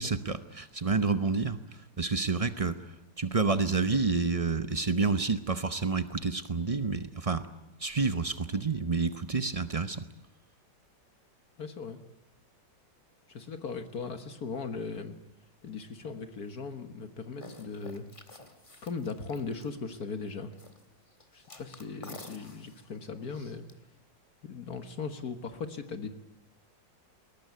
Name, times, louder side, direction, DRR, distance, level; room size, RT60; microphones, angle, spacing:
voice 1, 0.0-7.5 7.8-10.0, right 4 dB, 45° right, 11 dB, 0.4 m, -29 dB
voice 2, 11.6-12.0 13.3-15.2 15.6-18.1 18.8-20.5 21.3-23.7 24.4-26.1, left 5 dB, 55° left, 8 dB, 1.8 m, -38 dB
sound 1, 17.4-20.0 20.5-20.9 21.1-23.7, left 2 dB, 20° left, 1.8 m, -50 dB
21.0 x 19.0 x 9.3 m, 1.0 s
omnidirectional pair, 2.0 m